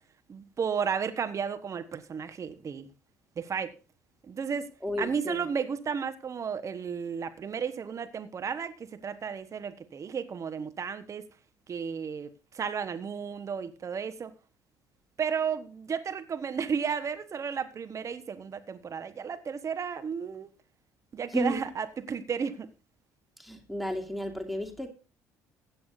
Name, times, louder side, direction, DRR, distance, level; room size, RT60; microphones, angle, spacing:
voice 1, 0.3-2.9 3.4-3.7 4.3-4.7 5.0-11.2 11.7-14.3 15.2-20.5 21.1-22.7, right 6 dB, 40° right, 1.2 m, -33 dB
voice 2, 4.8-5.4 21.3-21.6 23.4-24.9, equal, ahead, 2.7 m, -32 dB
16.0 x 10.0 x 2.6 m
hypercardioid pair, 60°, 8 cm